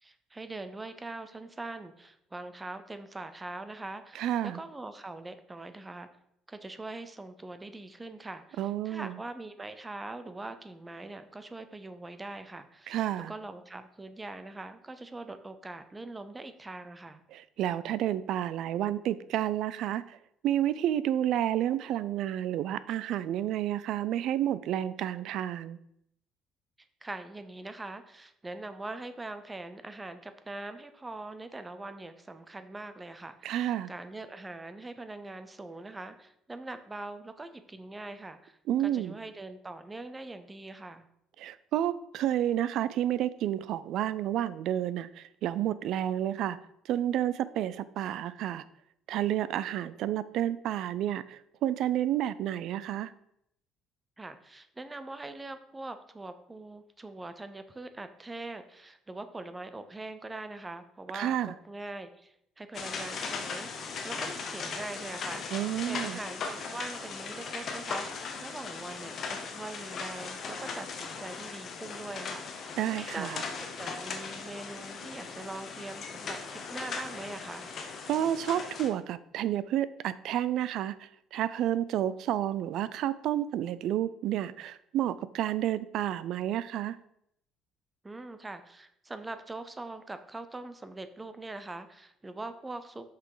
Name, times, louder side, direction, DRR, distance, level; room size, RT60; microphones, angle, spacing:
voice 1, 0.0-6.1 6.5-13.0 13.3-17.2 27.0-41.1 54.2-65.4 65.9-77.7 88.0-93.1, right 2 dB, 10° right, 10 dB, 0.6 m, -42 dB
voice 2, 4.1-4.6 8.6-9.2 12.9-13.3 17.3-20.2 20.4-25.8 33.4-33.9 38.7-39.2 41.4-46.6 46.9-48.6 49.1-53.1 61.1-61.5 65.5-66.2 72.8-73.4 78.1-87.0, right 11 dB, 60° right, 16 dB, 0.4 m, -30 dB
sound 1, 62.7-78.9, left 5 dB, 40° left, 1.0 m, -38 dB
6.0 x 5.6 x 4.9 m, 0.74 s
cardioid pair, 150°, 0 cm